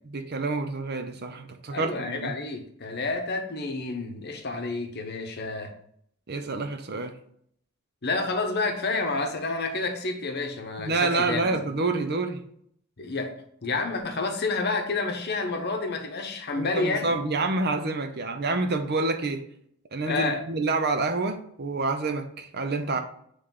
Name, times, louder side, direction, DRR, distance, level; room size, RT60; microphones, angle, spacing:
voice 1, 0.1-2.3 6.3-7.2 10.8-12.4 16.6-19.4 19.9-23.0, right 3 dB, 50° right, 7 dB, 0.7 m, -28 dB
voice 2, 1.7-5.7 8.0-11.6 13.0-13.4 13.6-17.1 20.0-20.4, left 3 dB, 50° left, 5 dB, 0.9 m, -29 dB
9.0 x 3.3 x 3.8 m, 0.66 s
head